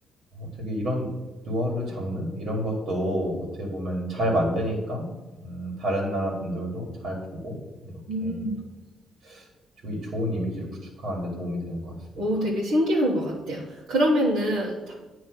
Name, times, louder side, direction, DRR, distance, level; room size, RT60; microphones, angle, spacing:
voice 1, 0.3-1.1 1.4-5.1 5.4-8.4 9.2-9.5 9.8-11.9, equal, 65° right, -2 dB, 1.9 m, -29 dB
voice 2, 8.1-8.6 12.2-14.9, equal, 85° right, -6 dB, 1.3 m, -25 dB
9.1 x 3.1 x 6.3 m, 1.2 s
cardioid pair, 90°, 0 cm